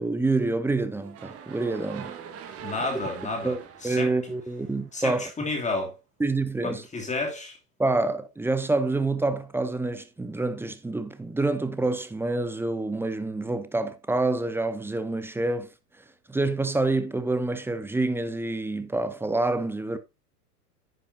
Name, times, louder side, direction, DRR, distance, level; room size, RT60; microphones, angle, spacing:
voice 1, 0.0-2.1 3.4-5.3 6.2-6.8 7.8-15.7 16.3-20.0, right 2 dB, 5° right, 0.8 m, -27 dB
sound 1, 0.9-5.1, right 8 dB, 30° right, 1.6 m, -43 dB
voice 2, 2.6-3.6 3.8-4.1 4.9-6.0 6.6-7.6, left 3 dB, 15° left, 2.8 m, -31 dB
10.5 x 8.5 x 2.7 m
hypercardioid pair, 105°, 48 cm